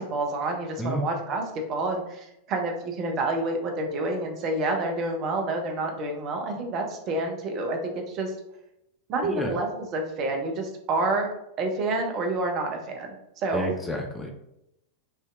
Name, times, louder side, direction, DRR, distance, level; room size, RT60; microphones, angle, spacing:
voice 1, 0.0-1.4 1.7-8.3 9.1-11.3 11.6-13.7, right 2 dB, 35° right, 3 dB, 0.6 m, -28 dB
voice 2, 9.2-9.5 13.5-14.3, equal, 10° left, 2 dB, 0.4 m, -30 dB
3.2 x 2.7 x 2.4 m, 0.82 s
figure-of-eight pair, 90°, 0 cm